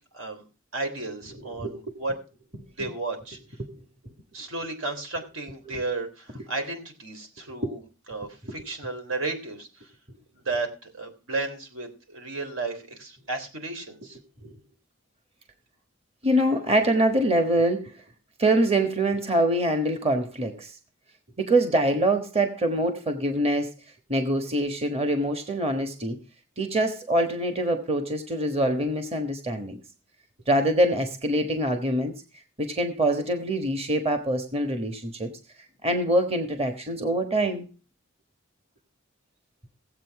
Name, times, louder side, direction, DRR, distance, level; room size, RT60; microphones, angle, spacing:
voice 1, 0.7-2.1 2.7-3.4 4.3-7.8 8.1-9.9 10.4-14.2, right 3 dB, 80° right, 5 dB, 3.5 m, -33 dB
voice 2, 1.4-2.0 3.6-3.8 5.7-5.8 8.4-8.5 14.4-14.6 16.2-17.9 18.4-20.7 21.4-23.7 24.1-26.2 26.6-29.8 30.5-32.1 32.6-35.3 35.8-37.6, right 1 dB, 30° right, 6 dB, 1.3 m, -24 dB
17.0 x 8.0 x 4.7 m, 0.34 s
head